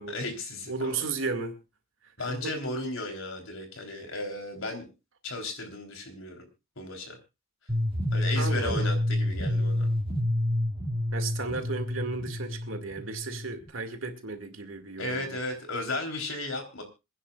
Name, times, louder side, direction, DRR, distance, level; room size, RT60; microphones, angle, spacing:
voice 1, 0.1-1.0 2.2-4.9 5.2-6.5 6.8-7.2 8.1-9.9 15.0-16.8, left 2 dB, 75° left, 3.7 m, -35 dB
voice 2, 0.7-1.6 2.2-2.5 8.3-8.9 11.1-15.4, right 3 dB, 70° right, 2.2 m, -34 dB
sound 1, 7.7-13.7, left 1 dB, 25° right, 2.3 m, -29 dB
27.0 x 10.0 x 2.4 m
head